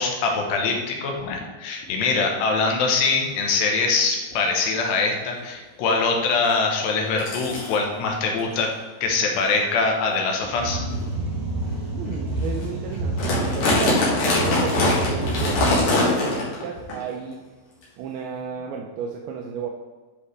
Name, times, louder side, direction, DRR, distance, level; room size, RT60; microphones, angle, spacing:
voice 1, 0.0-8.7 9.0-10.8, left 4 dB, 80° left, 1 dB, 3.1 m, -23 dB
sound 1, 3.3-3.4 3.8-4.1 4.7-4.8 5.1-5.4 6.5-6.6 7.2-7.7 8.5-8.6 9.3-9.5 10.1-10.2 10.9-11.0 11.6-11.7 12.1-12.2 12.4-12.7 12.9-16.6 16.9-17.0 17.8-17.9, left 2 dB, 55° left, 3.0 m, -23 dB
sound 2, 10.6-15.9, right 2 dB, 55° right, 2.8 m, -28 dB
voice 2, 11.9-17.4 18.0-19.7, right 6 dB, 85° right, 1 dB, 2.2 m, -33 dB
10.5 x 4.8 x 3.3 m, 1.3 s
omnidirectional pair, 5.0 m